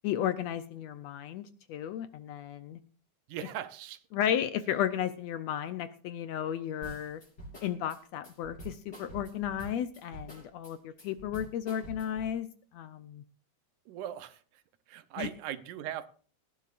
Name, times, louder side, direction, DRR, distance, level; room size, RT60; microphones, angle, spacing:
voice 1, 0.0-1.4 1.7-2.8 4.1-7.2 7.6-12.5 12.7-13.2 15.2-15.3, left 10 dB, 75° left, 1.7 m, -33 dB
voice 2, 3.3-4.0 13.9-14.6 14.9-16.1, right 11 dB, 80° right, 2.3 m, -39 dB
sound 1, 6.8-12.3, right 1 dB, 30° left, 6.2 m, -46 dB
18.5 x 14.0 x 2.5 m
omnidirectional pair, 3.6 m